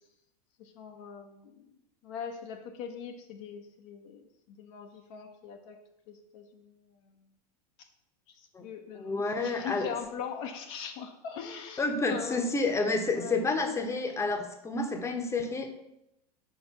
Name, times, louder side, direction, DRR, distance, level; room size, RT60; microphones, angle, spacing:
voice 1, 0.6-1.7 2.0-5.8 6.1-6.8 7.0-7.1 7.8-7.9 8.3-12.4 13.1-13.4, left 7 dB, 50° left, 4 dB, 0.8 m, -41 dB
voice 2, 8.9-9.9 11.8-15.7, left 3 dB, 15° left, 5 dB, 0.9 m, -29 dB
5.0 x 4.6 x 5.8 m, 0.84 s
figure-of-eight pair, 85°, 20 cm